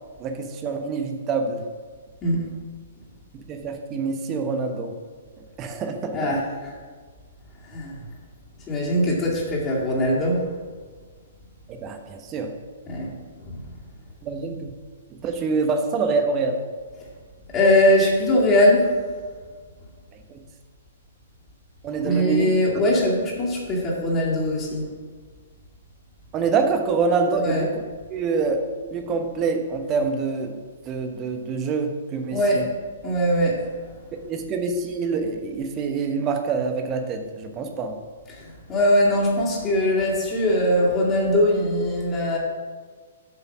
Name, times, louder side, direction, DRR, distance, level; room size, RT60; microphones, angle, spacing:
voice 1, 0.2-1.6 3.3-4.9 5.6-6.3 11.7-12.5 14.2-14.7 15.1-16.6 20.3-20.4 21.8-22.5 26.3-27.7 28.1-28.6 28.9-30.5 30.9-32.6 34.3-38.0, right 4 dB, 25° right, 6 dB, 1.0 m, -26 dB
voice 2, 2.2-2.5 6.1-6.7 7.6-8.1 8.7-10.5 12.9-13.7 17.5-19.0 22.0-24.9 27.4-27.7 32.3-32.7 33.0-33.7 38.3-42.4, left 1 dB, 20° left, -5 dB, 2.2 m, -21 dB
7.8 x 5.6 x 6.0 m, 1.5 s
figure-of-eight pair, 115°, 0 cm